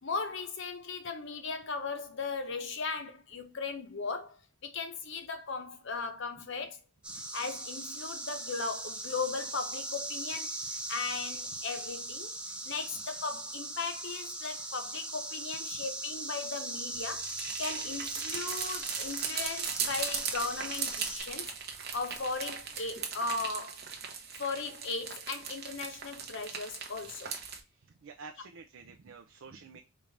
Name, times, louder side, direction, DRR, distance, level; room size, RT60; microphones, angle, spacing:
voice 1, 0.0-6.8 7.1-12.3 12.6-17.3 17.6-21.5 21.7-23.8 24.4-27.3, left 4 dB, 60° left, 0.8 m, -37 dB
sound 1, 7.0-21.2, right 2 dB, 5° right, 0.5 m, -39 dB
sound 2, 16.9-27.6, right 6 dB, 45° right, 0.9 m, -38 dB
voice 2, 27.7-29.8, right 4 dB, 65° right, 0.5 m, -50 dB
4.5 x 2.5 x 3.2 m
head